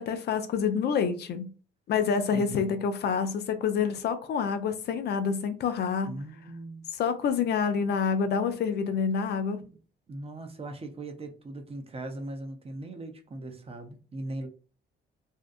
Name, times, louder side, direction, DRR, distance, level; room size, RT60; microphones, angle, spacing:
voice 1, 0.0-1.5 1.9-6.2 7.0-9.6, left 6 dB, 60° left, 0.5 m, -27 dB
voice 2, 2.3-2.8 6.0-6.9 9.6-9.8 10.1-14.5, right 2 dB, 30° right, 0.7 m, -39 dB
2.6 x 2.2 x 2.5 m
supercardioid pair, 65°, 20 cm